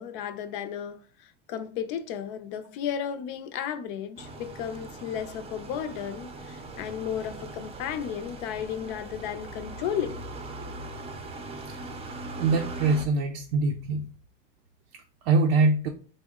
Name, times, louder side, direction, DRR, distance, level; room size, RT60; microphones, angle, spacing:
voice 1, 0.0-10.2, left 8 dB, 70° left, 0.5 m, -34 dB
sound 1, 4.2-13.0, right 2 dB, 20° right, 0.5 m, -40 dB
voice 2, 12.4-14.1 14.9-15.9, right 3 dB, 85° right, 0.6 m, -24 dB
3.6 x 2.1 x 3.6 m
supercardioid pair, 120°, 29 cm